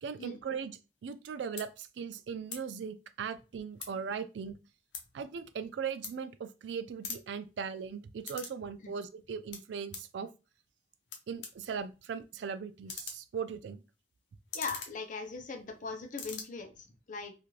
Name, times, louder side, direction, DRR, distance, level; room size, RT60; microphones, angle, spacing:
voice 1, 0.0-4.5 5.1-10.3 11.3-13.8, right 6 dB, 80° right, 0.3 m, -39 dB
sound 1, 1.0-1.2 1.5-1.7 2.4-2.6 3.0-4.1 4.5-6.6 6.9-8.6 8.9-10.1 10.8-10.9 11.1-15.8 16.0-16.4, left 5 dB, 85° left, 0.7 m, -44 dB
voice 2, 14.5-17.3, left 4 dB, 50° left, 0.6 m, -40 dB
2.5 x 2.5 x 3.1 m
head